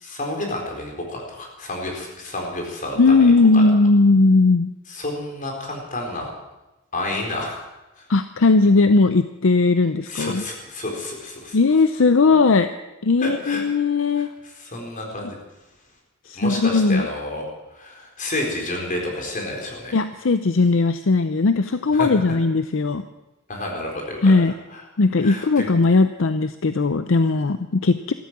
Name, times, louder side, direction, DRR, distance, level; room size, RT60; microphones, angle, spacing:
voice 1, 0.0-3.6 4.9-6.3 6.9-7.6 8.0-8.1 10.1-11.6 13.2-13.6 14.2-15.4 16.3-17.4 17.7-20.0 21.9-22.1 23.5-24.3 24.7-24.8 25.2-25.7, left 1 dB, 40° left, 1 dB, 4.4 m, -30 dB
voice 2, 3.0-4.7 8.1-10.4 11.5-12.7 13.0-14.3 16.3-17.1 19.9-23.0 24.2-24.5 25.0-28.1, left 3 dB, 70° left, 10 dB, 0.6 m, -18 dB
14.5 x 13.0 x 7.5 m, 1.0 s
head